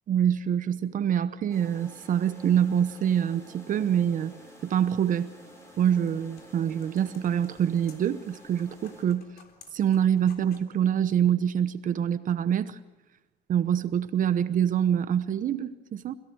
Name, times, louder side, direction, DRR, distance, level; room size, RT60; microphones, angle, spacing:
voice 1, 0.1-4.3 4.6-5.3 5.8-9.2 9.7-12.8 13.5-16.1, right 9 dB, 50° right, 13 dB, 1.0 m, -25 dB
sound 1, 1.5-9.0, equal, 15° left, 7.7 m, -50 dB
sound 2, 5.6-10.8, left 6 dB, 65° left, 3.6 m, -56 dB
28.5 x 16.5 x 6.3 m, 1.1 s
cardioid pair, 110°, 17 cm